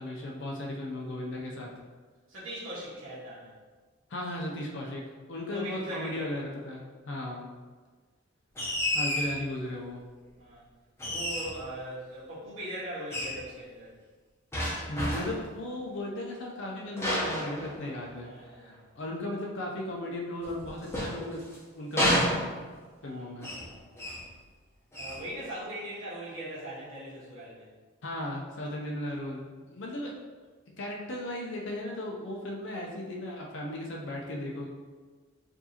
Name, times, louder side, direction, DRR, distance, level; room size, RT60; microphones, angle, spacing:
voice 1, 0.0-1.7 4.1-5.0 5.3-7.5 8.9-10.0 14.9-21.5 21.7-22.5 23.0-23.5 28.0-30.1 30.8-34.7, left 1 dB, 60° left, -1 dB, 0.5 m, -36 dB
voice 2, 2.3-3.5 5.5-6.3 10.4-10.6 11.1-13.9 18.2-18.8 23.0-24.2 25.0-27.7, right 1 dB, 75° right, -11 dB, 1.4 m, -40 dB
sound 1, 8.5-9.4 11.0-11.7 13.1-13.4 14.5-15.5 17.0-18.2 20.4-21.6 22.0-22.9 23.4-23.7 24.0-24.3 24.9-25.2, equal, 10° left, 0.7 m, -30 dB
4.6 x 2.7 x 2.8 m, 1.4 s
head